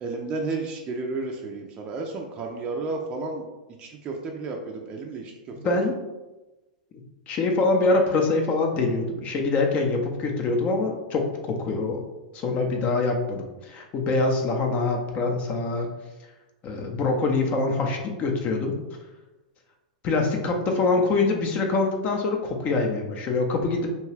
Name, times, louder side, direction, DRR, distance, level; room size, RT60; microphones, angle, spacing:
voice 1, 0.0-3.5 3.8-5.3 5.6-5.7, right 3 dB, 30° right, 1 dB, 0.4 m, -32 dB
voice 2, 7.3-12.0 12.3-15.9 16.6-18.7 20.0-23.9, left 3 dB, 35° left, 3 dB, 0.6 m, -24 dB
2.8 x 2.2 x 3.2 m, 1.1 s
hypercardioid pair, 120°, 4 cm